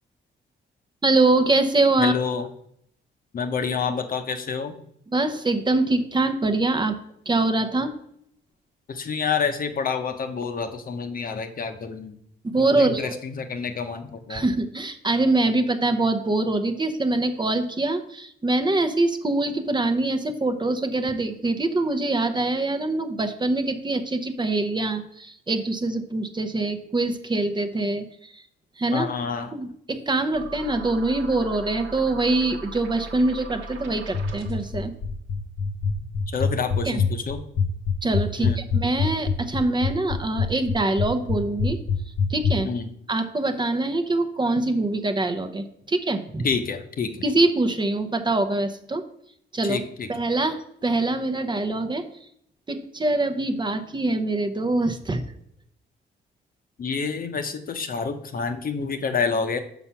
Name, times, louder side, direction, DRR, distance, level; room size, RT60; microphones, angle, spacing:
voice 1, 1.0-2.1 5.1-7.0 7.3-7.9 12.5-13.2 14.3-28.4 28.8-29.1 29.5-34.9 36.8-37.0 38.0-41.8 42.3-42.7 43.1-46.4 47.2-49.0 49.5-49.8 50.1-52.1 52.7-55.2, right 2 dB, 25° right, 8 dB, 0.8 m, -24 dB
voice 2, 2.0-2.4 3.3-4.7 8.9-12.1 12.7-14.4 28.9-29.5 36.3-37.4 38.4-38.6 42.6-42.9 46.4-47.2 49.7-50.1 56.8-59.6, left 5 dB, 45° left, 7 dB, 0.9 m, -28 dB
sound 1, 30.3-34.7, right 2 dB, 80° right, 1.3 m, -39 dB
sound 2, 34.1-42.5, left 6 dB, 75° left, 1.3 m, -23 dB
6.0 x 5.6 x 5.7 m, 0.69 s
cardioid pair, 90°, 20 cm